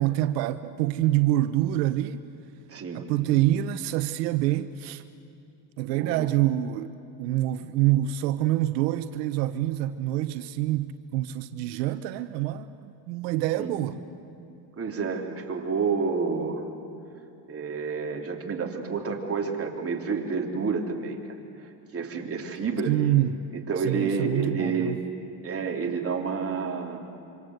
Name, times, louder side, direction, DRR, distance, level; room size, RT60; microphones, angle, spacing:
voice 1, 0.0-2.2 2.9-5.0 5.8-14.0 22.9-23.4 23.8-25.0, right 14 dB, 90° right, 0.9 m, -26 dB
voice 2, 2.7-3.0 5.8-6.3 13.6-13.8 14.8-16.6 17.5-21.2 21.6-23.0 23.7-25.0 25.4-27.0, right 5 dB, 30° right, 3.4 m, -29 dB
26.0 x 25.5 x 7.9 m
supercardioid pair, 105°, 47 cm